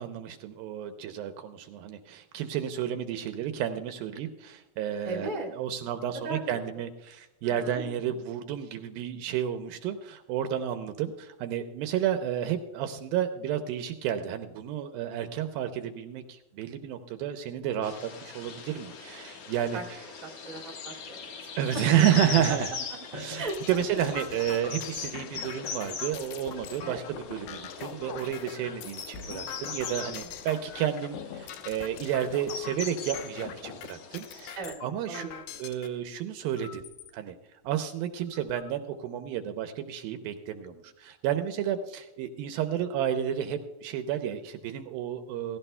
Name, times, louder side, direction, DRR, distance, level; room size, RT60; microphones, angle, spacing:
voice 1, 0.0-20.0 21.6-22.7 23.1-35.3 35.6-36.9 37.1-37.4 37.6-45.6, right 10 dB, 80° right, 8 dB, 2.3 m, -31 dB
voice 2, 5.0-5.5 6.2-6.4 7.4-7.8 19.7-19.8 20.2-21.8 22.5-22.6 23.3-23.6 26.8-27.0 30.2-30.3 34.5-34.7 35.1-35.6, right 3 dB, 15° right, -1 dB, 1.4 m, -37 dB
sound 1, 17.8-34.5, left 5 dB, 55° left, 2.0 m, -41 dB
sound 2, 23.0-35.9 36.6-37.1 37.7-37.8 38.1-38.7, left 9 dB, 80° left, 2.8 m, -43 dB
16.5 x 16.5 x 2.2 m, 1.0 s
omnidirectional pair, 4.5 m